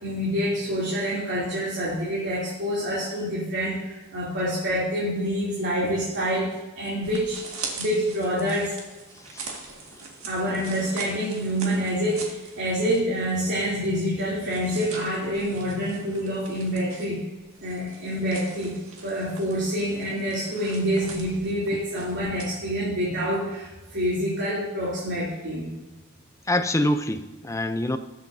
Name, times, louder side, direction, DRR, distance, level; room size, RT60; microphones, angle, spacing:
voice 1, 0.0-8.7 10.3-17.2 17.6-25.7, equal, 60° right, -7 dB, 2.9 m, -27 dB
sound 1, 7.0-13.2 13.5-13.6 14.2-22.5, right 4 dB, 75° right, 2.0 m, -42 dB
voice 2, 26.5-28.0, left 1 dB, 15° left, 9 dB, 0.6 m, -25 dB
20.0 x 7.6 x 2.7 m, 1.1 s
head